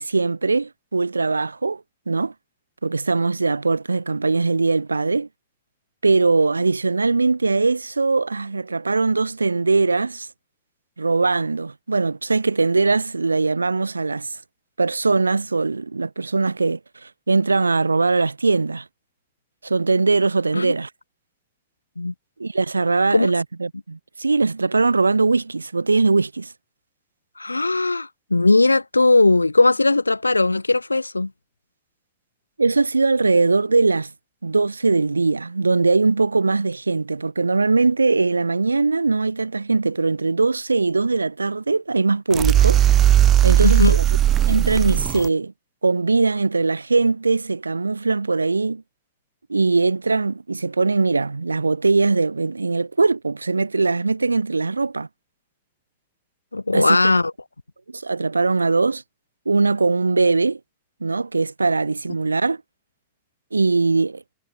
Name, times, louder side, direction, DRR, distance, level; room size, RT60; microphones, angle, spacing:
voice 1, 0.0-2.3 2.8-5.3 6.0-10.3 11.0-14.3 14.8-18.8 19.6-20.9 22.4-26.5 32.6-34.1 34.4-42.8 43.4-44.0 44.4-45.5 45.8-48.8 49.5-55.1 56.7-57.0 57.9-59.0 59.4-60.6 61.0-62.6 63.5-64.2, right 3 dB, 80° right, 1.5 m, -21 dB
voice 2, 27.4-31.3 43.6-44.0 56.5-57.3, left 2 dB, 80° left, 0.8 m, -18 dB
sound 1, 42.3-45.3, right 12 dB, 30° right, 0.6 m, -17 dB
figure-of-eight pair, 90°, 0 cm